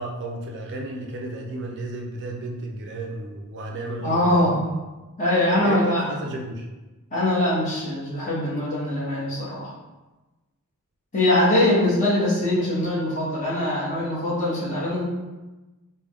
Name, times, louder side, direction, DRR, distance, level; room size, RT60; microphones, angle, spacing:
voice 1, 0.0-4.5 5.6-6.7, right 2 dB, 55° right, 0 dB, 0.4 m, -33 dB
voice 2, 4.0-4.6 5.2-6.0 7.1-9.7 11.1-15.0, left 1 dB, 35° left, -7 dB, 1.1 m, -22 dB
3.4 x 2.2 x 3.5 m, 1.1 s
head